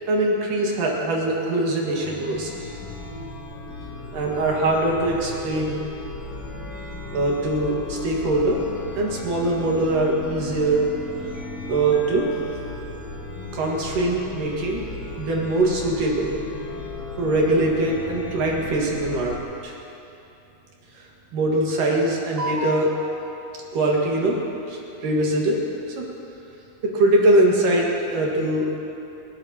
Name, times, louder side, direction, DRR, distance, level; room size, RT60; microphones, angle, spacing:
voice 1, 0.1-2.5 4.1-5.8 7.1-8.6 9.0-10.9 11.7-12.3 13.5-14.8 15.2-16.3 17.2-19.7 20.9-21.1 21.3-23.1 23.7-24.4 24.7-25.6 26.0-26.1 26.9-28.7, right 2 dB, 65° right, -2 dB, 3.1 m, -22 dB
Chime, 1.9-19.4, left 2 dB, 45° left, 2.7 m, -36 dB
29.0 x 12.5 x 2.9 m, 2.8 s
omnidirectional pair, 4.5 m